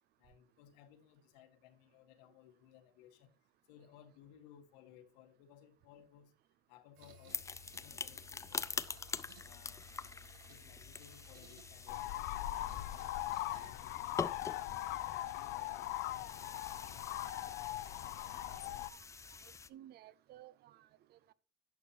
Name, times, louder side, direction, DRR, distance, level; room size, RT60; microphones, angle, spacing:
voice 1, 0.2-3.3 3.7-6.3 6.7-7.5 7.8-8.9 9.4-10.1 10.5-13.1 13.6-14.5 15.1-16.6, left 10 dB, 85° left, 1.7 m, -61 dB
sound 1, 7.0-13.7, left 1 dB, 70° right, 2.4 m, -59 dB
sound 2, 7.3-19.7, left 5 dB, 15° left, 0.4 m, -45 dB
sound 3, 11.9-18.9, left 15 dB, 60° left, 0.6 m, -40 dB
voice 2, 18.4-19.0 19.4-21.3, right 13 dB, 50° right, 0.7 m, -57 dB
11.0 x 8.1 x 3.0 m
supercardioid pair, 115°, 21 cm